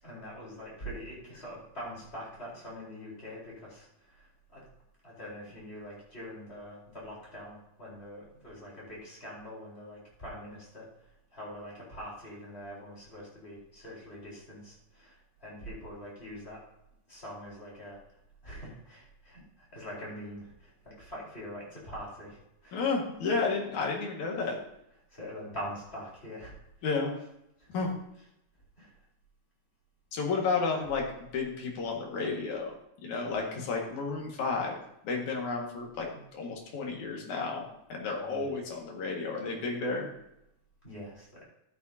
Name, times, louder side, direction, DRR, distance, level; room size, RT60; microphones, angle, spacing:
voice 1, 0.0-4.6 5.0-16.6 17.1-18.0 18.4-22.8 24.4-24.5 25.1-26.5 27.6-27.7 28.8-29.0 30.7-30.9 36.1-36.2 36.7-37.0 38.2-38.6 40.8-41.4, equal, 20° left, -5 dB, 4.1 m, -44 dB
voice 2, 22.7-24.6 26.8-27.1 27.7-27.9 30.1-31.0 31.3-32.7 33.0-34.8 35.0-40.1, left 4 dB, 70° left, 0 dB, 3.2 m, -32 dB
12.5 x 9.6 x 2.8 m, 0.82 s
omnidirectional pair, 3.7 m